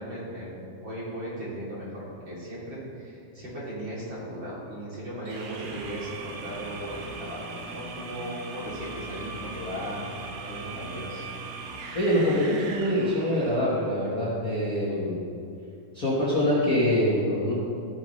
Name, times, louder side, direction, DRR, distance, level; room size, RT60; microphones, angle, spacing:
voice 1, 0.0-11.3, equal, 30° right, -8 dB, 3.1 m, -37 dB
sound 1, 5.3-13.8, right 4 dB, 70° right, 2.8 m, -39 dB
voice 2, 11.9-15.2 15.9-17.5, equal, 80° left, -9 dB, 0.8 m, -24 dB
16.0 x 9.5 x 3.3 m, 2.5 s
omnidirectional pair, 4.8 m